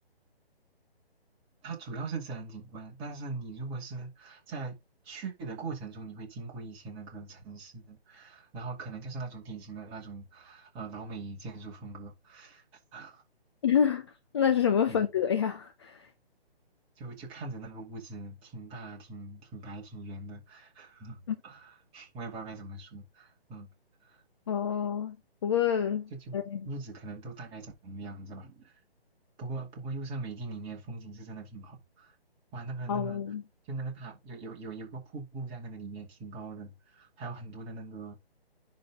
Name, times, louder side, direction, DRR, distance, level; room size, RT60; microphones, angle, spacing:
voice 1, 1.6-4.8 5.0-12.6 12.9-13.2 14.9-15.1 17.0-23.7 24.0-24.2 26.1-28.8 29.4-32.2 32.5-33.2 33.6-38.2, right 3 dB, 15° right, 2.5 m, -41 dB
voice 2, 13.6-14.1 14.3-16.1 21.3-21.4 24.5-25.2 25.4-26.6 32.9-33.4, left 8 dB, 25° left, 0.7 m, -27 dB
10.5 x 3.9 x 3.6 m
figure-of-eight pair, 145°, 32 cm